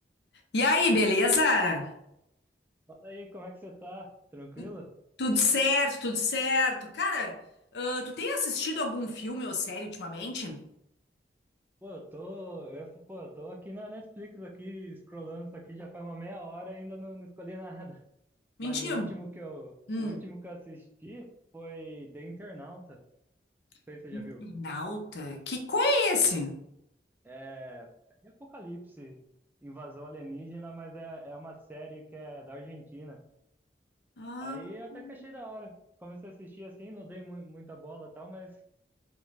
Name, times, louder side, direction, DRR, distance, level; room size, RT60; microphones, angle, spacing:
voice 1, 0.5-1.9 4.6-4.7 5.2-7.4 7.7-10.6 18.6-19.1 19.9-20.2 24.1-26.6 34.2-34.6 34.9-35.0, left 3 dB, 70° left, 3 dB, 0.5 m, -28 dB
voice 2, 2.9-4.9 11.8-18.0 18.6-21.3 21.5-23.0 23.9-24.4 27.2-27.9 28.2-29.2 29.6-33.2 34.4-35.7 36.0-38.6, right 1 dB, 10° right, 1 dB, 0.3 m, -43 dB
2.5 x 2.2 x 3.1 m, 0.79 s
head